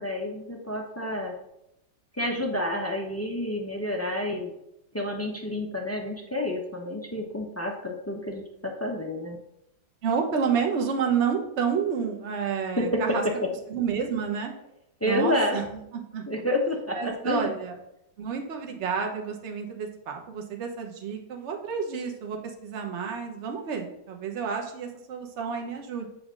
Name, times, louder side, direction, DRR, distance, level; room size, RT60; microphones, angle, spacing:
voice 1, 0.0-1.3 2.2-4.5 4.9-9.4 12.8-12.9 15.0-15.6 16.3-17.5, left 1 dB, 25° left, 0 dB, 0.3 m, -29 dB
voice 2, 10.0-13.2 13.7-14.5 15.0-15.6 15.9-16.2 16.9-17.7 18.2-26.1, right 6 dB, 40° right, 2 dB, 1.2 m, -30 dB
8.7 x 3.5 x 6.2 m, 0.82 s
omnidirectional pair, 2.1 m